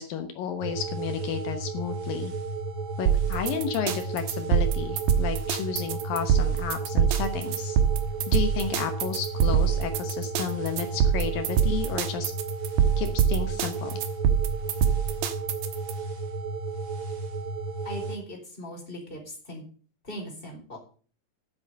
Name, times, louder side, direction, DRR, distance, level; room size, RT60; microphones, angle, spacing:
voice 1, 0.0-2.3 3.0-7.8 8.3-12.3 13.0-14.0, left 8 dB, 75° left, 7 dB, 2.9 m, -32 dB
sound 1, 0.6-18.2, right 3 dB, 45° right, 2.7 m, -34 dB
sound 2, 3.1-15.9, right 8 dB, 75° right, 2.9 m, -24 dB
voice 2, 17.8-19.6 20.0-20.8, equal, 15° left, 0 dB, 4.4 m, -39 dB
10.0 x 8.0 x 8.5 m, 0.41 s
omnidirectional pair, 4.2 m